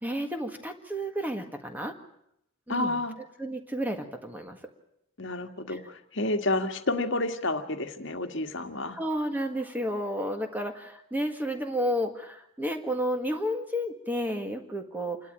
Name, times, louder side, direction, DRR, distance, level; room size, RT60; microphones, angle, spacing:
voice 1, 0.0-2.0 2.7-3.0 3.4-4.6 5.7-5.8 8.9-15.3, equal, 10° right, 5 dB, 1.7 m, -31 dB
voice 2, 2.7-3.2 5.2-9.0, left 2 dB, 55° left, 7 dB, 1.7 m, -30 dB
28.0 x 12.5 x 8.8 m, 0.78 s
head